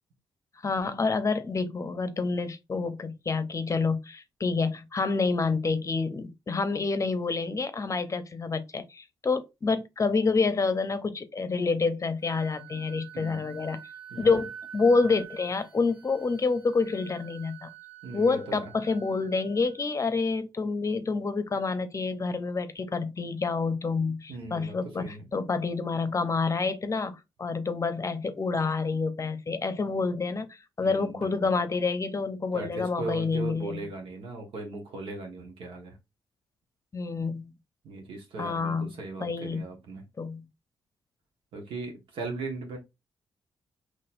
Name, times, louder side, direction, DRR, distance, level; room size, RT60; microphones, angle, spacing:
voice 1, 0.6-13.8 14.2-17.7 18.1-33.8 36.9-37.5 38.4-39.7 40.2-40.5, left 4 dB, 35° left, 0.7 m, -28 dB
Wind instrument woodwind instrument, 12.2-20.0, right 9 dB, 15° right, 1.7 m, -47 dB
voice 2, 14.1-14.4 18.0-18.7 24.3-25.3 30.8-31.5 32.5-35.9 37.8-40.0 41.5-42.8, right 3 dB, 75° right, 1.3 m, -38 dB
4.1 x 3.1 x 2.5 m
supercardioid pair, 55°, 9 cm